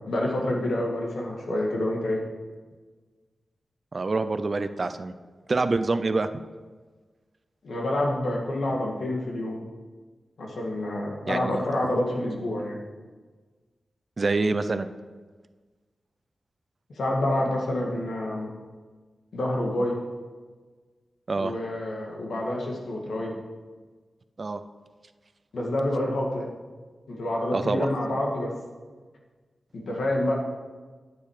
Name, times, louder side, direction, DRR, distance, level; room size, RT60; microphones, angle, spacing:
voice 1, 0.1-2.2 7.6-9.6 10.4-12.8 17.0-18.5 19.3-20.0 21.4-23.3 25.5-26.5 27.1-28.5 29.7-30.3, left 1 dB, 90° left, -1 dB, 2.2 m, -28 dB
voice 2, 3.9-5.1 5.5-6.3 11.3-11.6 14.2-14.9 21.3-21.5 24.4-24.6 27.5-27.9, right 3 dB, 40° right, 11 dB, 0.5 m, -26 dB
10.0 x 9.3 x 5.0 m, 1.4 s
wide cardioid pair, 140°, 0 cm